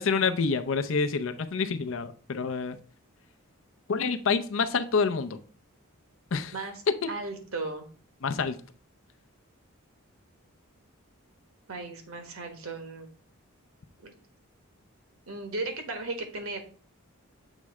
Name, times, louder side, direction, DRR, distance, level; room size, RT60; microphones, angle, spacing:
voice 1, 0.0-2.8 3.9-5.4 6.3-6.5 7.0-7.1 8.2-8.6, left 5 dB, 60° left, 0.5 m, -27 dB
voice 2, 7.1-7.9 11.7-13.1 14.0-14.1 15.3-16.6, right 3 dB, 70° right, 1.3 m, -36 dB
7.2 x 3.2 x 4.7 m
head